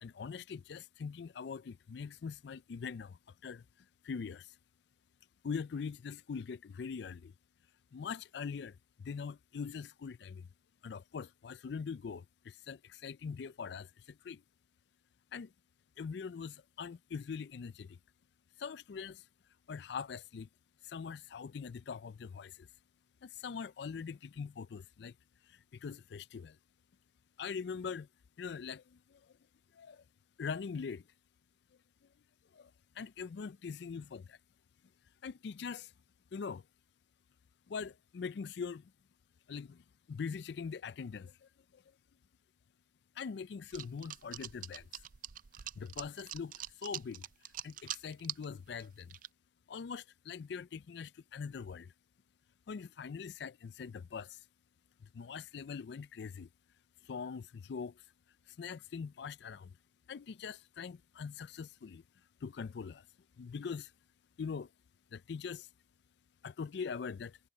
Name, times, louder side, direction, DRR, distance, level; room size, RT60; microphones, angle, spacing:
voice 1, 0.0-3.7 4.0-4.6 5.4-7.3 7.9-10.5 10.8-14.4 15.3-15.5 16.0-18.0 18.6-19.3 19.7-20.5 20.8-22.7 23.2-25.2 25.5-26.6 27.4-28.1 28.4-29.2 29.7-30.0 30.4-31.1 32.5-34.4 35.2-35.9 36.3-36.7 37.7-38.9 39.5-41.8 43.2-44.9 45.8-47.3 47.6-49.1 49.7-51.9 52.7-54.4 55.0-56.5 57.0-58.0 58.5-59.8 60.1-62.0 62.4-63.1 63.4-63.9 64.4-64.7 65.1-65.7 66.4-67.4, left 5 dB, 60° left, 0.4 m, -43 dB
sound 1, 43.7-48.4 48.8-49.3, right 12 dB, 45° right, 0.4 m, -43 dB
head